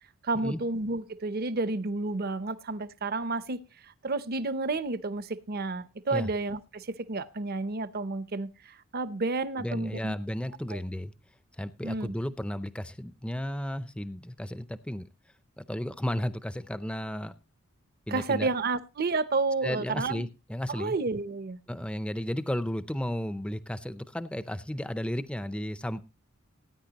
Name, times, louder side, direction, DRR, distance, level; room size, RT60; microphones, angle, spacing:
voice 1, 0.2-10.2 10.7-10.8 11.8-12.1 18.1-20.3 20.7-21.6, right 3 dB, 45° right, 0.7 m, -31 dB
voice 2, 9.6-11.1 11.6-15.0 15.6-17.3 18.1-18.5 19.6-21.0 21.7-26.0, equal, 5° left, 0.5 m, -33 dB
18.5 x 9.5 x 2.9 m
head